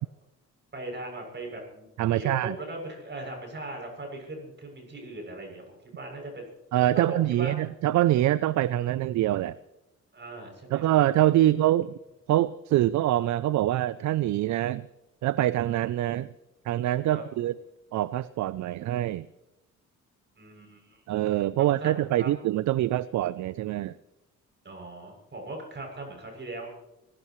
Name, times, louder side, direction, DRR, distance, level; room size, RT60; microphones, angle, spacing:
voice 1, 0.7-6.4 6.9-7.6 10.1-10.9 11.4-11.5 17.1-17.5 20.4-21.0 21.3-21.9 22.2-22.3 24.6-26.7, right 2 dB, 35° right, 1 dB, 7.3 m, -39 dB
voice 2, 2.0-2.5 6.7-9.6 10.7-11.9 12.3-14.9 15.2-16.3 16.7-17.5 17.9-19.3 21.1-23.9, right 14 dB, 70° right, 17 dB, 0.5 m, -25 dB
25.5 x 16.5 x 3.1 m, 0.94 s
cardioid pair, 90°, 30 cm